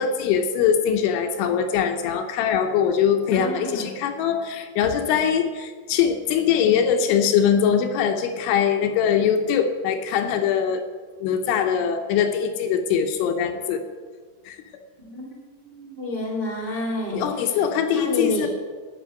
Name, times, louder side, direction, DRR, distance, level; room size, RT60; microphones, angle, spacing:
voice 1, 0.0-10.8 11.2-13.8 14.5-14.6 17.1-18.5, left 8 dB, 75° left, 6 dB, 3.2 m, -22 dB
voice 2, 3.3-3.9 15.0-15.4 15.6-17.6 17.9-18.5, left 1 dB, 50° right, -3 dB, 0.6 m, -29 dB
12.5 x 6.0 x 9.3 m, 1.5 s
omnidirectional pair, 5.8 m